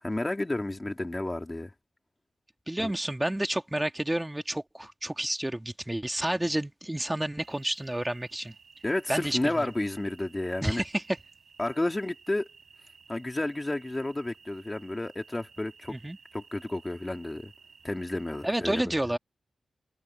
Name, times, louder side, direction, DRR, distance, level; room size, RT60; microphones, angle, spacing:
voice 1, 0.0-1.7 2.8-2.9 8.8-10.8 11.6-12.5 13.1-16.0 16.3-17.5 17.8-19.0, left 2 dB, 20° left, 2.9 m, -31 dB
voice 2, 2.7-8.5 9.1-9.7 10.6-11.0 15.9-16.2 18.4-19.2, right 1 dB, 10° right, 1.7 m, -30 dB
sound 1, 7.4-18.6, right 5 dB, 65° right, 6.2 m, -56 dB
wide cardioid pair, 95°, 0 cm